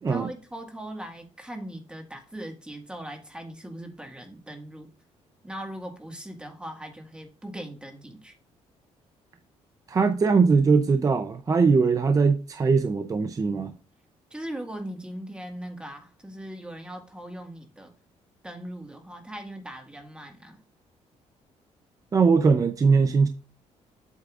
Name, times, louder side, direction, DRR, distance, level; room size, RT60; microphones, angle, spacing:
voice 1, 0.1-4.9 5.4-8.3 14.3-17.9 18.4-20.6, right 1 dB, 10° right, 1.7 m, -39 dB
voice 2, 9.9-13.7 22.1-23.3, right 4 dB, 30° right, 0.6 m, -21 dB
8.2 x 8.0 x 2.5 m
cardioid pair, 115°, 12 cm